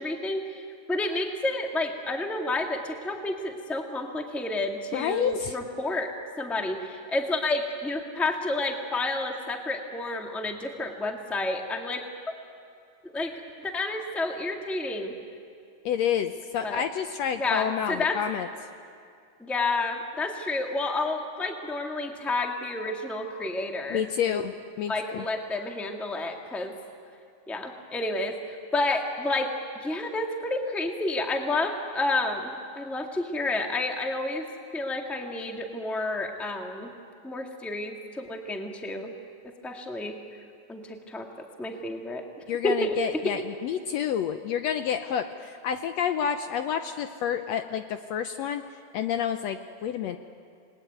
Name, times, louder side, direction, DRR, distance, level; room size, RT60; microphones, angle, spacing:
voice 1, 0.0-6.1 6.4-12.0 13.0-13.3 13.6-15.2 16.6-16.8 17.4-18.2 19.4-24.4 24.9-26.7 27.5-29.5 29.8-34.5 34.7-36.9 37.2-39.1 39.4-40.2 40.7-42.2 42.6-43.3, left 2 dB, ahead, 2 dB, 1.2 m, -30 dB
voice 2, 4.9-5.6 15.8-18.5 23.9-24.5 24.8-25.2 42.5-48.6 48.9-50.2, left 8 dB, 70° left, 7 dB, 1.7 m, -29 dB
28.5 x 21.0 x 9.3 m, 2.4 s
omnidirectional pair, 3.5 m